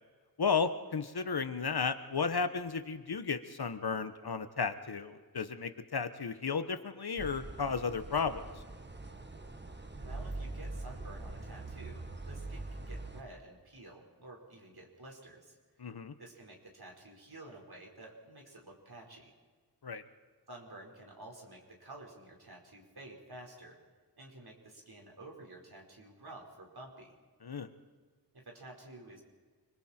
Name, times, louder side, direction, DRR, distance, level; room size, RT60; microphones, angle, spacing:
voice 1, 0.4-8.4 15.8-16.1 19.8-20.0 27.4-27.7, left 5 dB, 65° left, 10 dB, 1.3 m, -34 dB
sound 1, 7.2-13.2, right 2 dB, 25° right, 1.4 m, -43 dB
voice 2, 10.0-15.6 16.2-19.3 20.5-23.8 24.2-27.1 28.3-29.2, right 2 dB, 65° right, -1 dB, 4.9 m, -51 dB
29.5 x 22.0 x 4.5 m, 1.5 s
wide cardioid pair, 85°, 41 cm